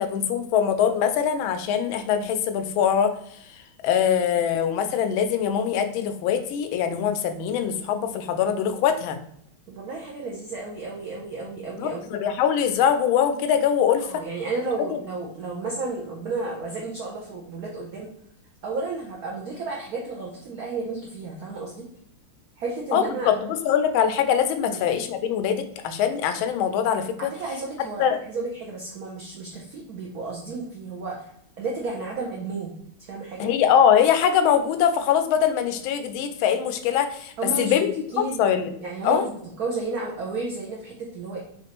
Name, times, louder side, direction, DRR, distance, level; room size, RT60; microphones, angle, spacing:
voice 1, 0.0-3.1 3.8-9.2 11.8-14.2 22.9-27.3 28.0-28.2 33.4-37.9 38.4-38.7 39.0-39.2, left 8 dB, 75° left, 8 dB, 1.3 m, -22 dB
voice 2, 9.7-12.1 14.0-18.1 18.6-21.9 22.6-23.3 24.7-24.8 27.2-31.3 31.6-32.7 33.0-33.5 37.4-37.9 38.1-38.5 38.8-41.4, right 3 dB, 65° right, -2 dB, 0.9 m, -32 dB
4.1 x 3.6 x 2.9 m, 0.70 s
omnidirectional pair, 2.4 m